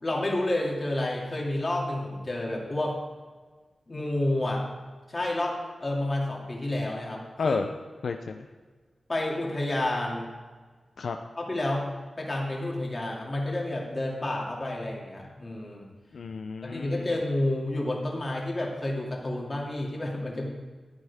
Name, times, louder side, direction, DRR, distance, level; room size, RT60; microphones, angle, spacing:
voice 1, 0.0-3.0 3.9-4.6 5.1-7.6 9.1-10.3 11.4-15.9 16.7-20.5, left 1 dB, 35° left, -2 dB, 2.6 m, -30 dB
voice 2, 8.0-8.5 11.0-11.2 16.1-17.1, left 4 dB, 80° left, 6 dB, 0.5 m, -31 dB
14.0 x 9.8 x 3.6 m, 1.4 s
wide cardioid pair, 100°, 0 cm